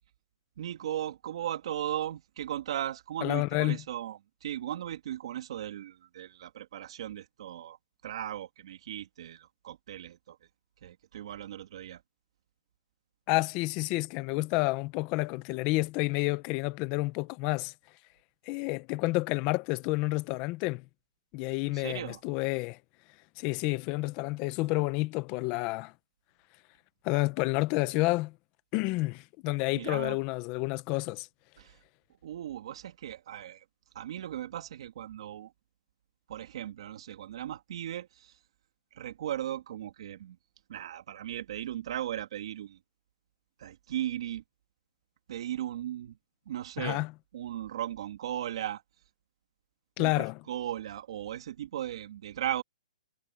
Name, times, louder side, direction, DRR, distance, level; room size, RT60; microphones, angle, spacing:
voice 1, 0.6-7.8 8.0-10.4 10.8-12.0 21.7-22.2 29.8-30.2 31.6-31.7 32.2-33.6 33.9-35.5 36.3-38.3 39.0-40.4 40.7-42.8 43.6-44.4 45.3-46.2 46.5-47.0 47.3-48.8 50.0-52.6, right 11 dB, 45° right, 2.2 m, -37 dB
voice 2, 3.2-3.8 13.3-17.7 18.5-20.8 21.3-22.8 23.4-25.9 27.0-28.3 28.7-31.3 46.8-47.1 50.0-50.4, left 22 dB, 20° left, 0.8 m, -29 dB
hypercardioid pair, 170°, 4 cm